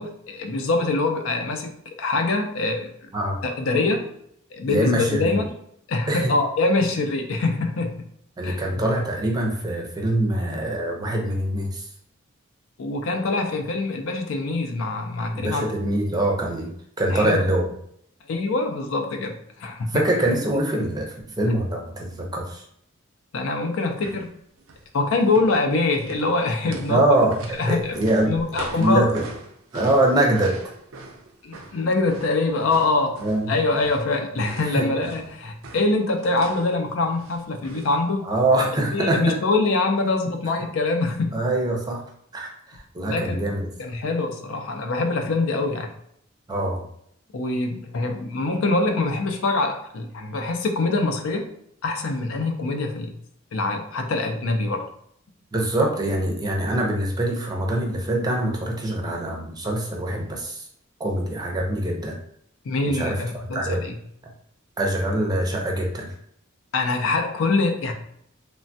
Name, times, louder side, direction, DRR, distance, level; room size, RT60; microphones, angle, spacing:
voice 1, 0.0-3.1 3.4-4.0 4.5-5.5 5.9-8.0 8.4-8.9 12.8-15.7 17.1-17.4 18.3-20.1 23.3-24.3 24.9-27.0 27.6-27.9 28.3-29.1 31.4-33.2 33.5-38.2 38.7-41.4 43.1-43.4 43.8-45.9 47.3-51.5 51.8-53.1 53.5-54.9 62.6-64.0 66.7-67.9, left 3 dB, 80° left, 4 dB, 0.5 m, -24 dB
voice 2, 4.7-5.4 6.1-6.3 8.4-11.9 15.3-17.7 19.9-22.6 26.9-28.3 28.7-29.2 29.7-30.6 33.2-33.6 34.7-34.9 38.2-39.3 41.3-42.0 42.3-43.7 46.5-46.8 55.5-60.6 61.0-62.1 62.8-63.2 63.5-63.8 64.8-66.1, right 1 dB, 20° right, 0 dB, 0.5 m, -24 dB
sound 1, 23.9-24.3 24.6-24.9 25.2-34.1 34.4-36.7 37.2-38.0 38.3-38.4, right 2 dB, 85° right, 0.5 m, -40 dB
3.2 x 2.2 x 2.6 m, 0.70 s
head